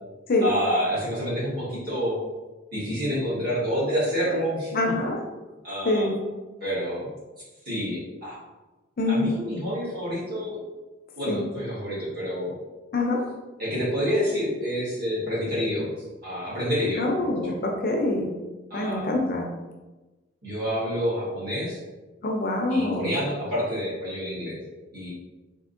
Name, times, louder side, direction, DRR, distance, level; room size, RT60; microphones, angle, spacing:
voice 1, 0.4-2.2 2.7-4.8 5.6-6.1 6.6-7.1 7.6-8.3 9.1-10.6 11.2-12.5 13.6-15.9 16.2-17.4 18.7-19.1 20.4-21.8 22.7-24.6 24.9-25.1, equal, 50° right, -8 dB, 1.4 m, -28 dB
voice 2, 4.7-5.2 5.8-6.2 9.0-9.3 11.3-11.4 12.9-13.3 17.0-18.3 18.7-19.5 22.2-23.1, left 2 dB, 45° left, 1 dB, 0.4 m, -25 dB
3.5 x 2.7 x 2.5 m, 1.1 s
head